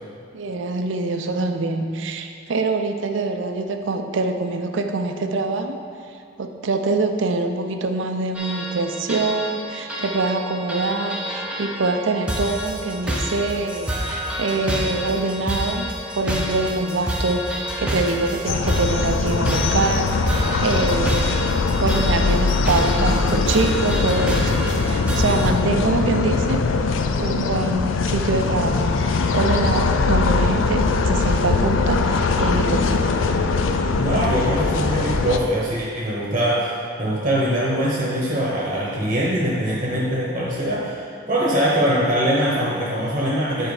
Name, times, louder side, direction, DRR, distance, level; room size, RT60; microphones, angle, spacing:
voice 1, 0.3-5.8 6.4-26.7 27.2-33.1, right 3 dB, 65° right, 6 dB, 0.5 m, -24 dB
sound 1, 8.3-25.5, equal, 5° right, 0.6 m, -28 dB
sound 2, 18.5-35.4, left 4 dB, 70° left, 0.4 m, -21 dB
voice 2, 34.0-41.0 41.3-43.7, equal, 35° right, -5 dB, 0.9 m, -22 dB
7.4 x 4.4 x 4.8 m, 2.3 s
head